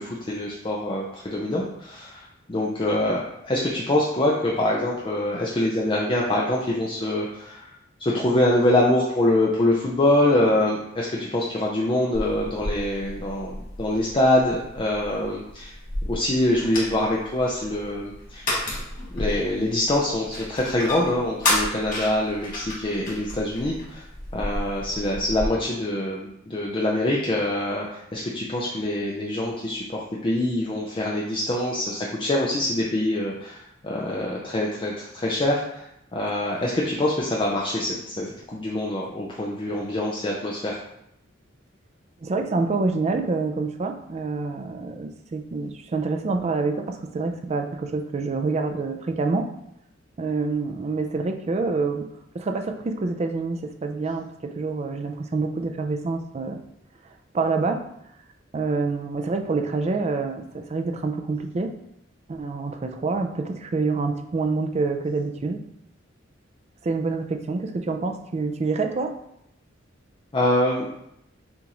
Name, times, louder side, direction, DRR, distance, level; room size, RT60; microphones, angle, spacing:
voice 1, 0.0-7.7 8.0-15.7 16.1-18.6 19.1-24.0 24.3-35.9 36.1-40.7 70.3-70.9, left 1 dB, 25° left, -3 dB, 0.5 m, -24 dB
sound 1, 12.1-25.5, left 1 dB, 45° left, 1.5 m, -32 dB
voice 2, 42.2-49.5 50.2-52.1 52.3-56.6 57.3-57.8 58.5-61.7 62.3-65.6 66.8-69.1, right 3 dB, 35° right, 5 dB, 0.4 m, -27 dB
6.9 x 2.5 x 2.9 m, 0.79 s
head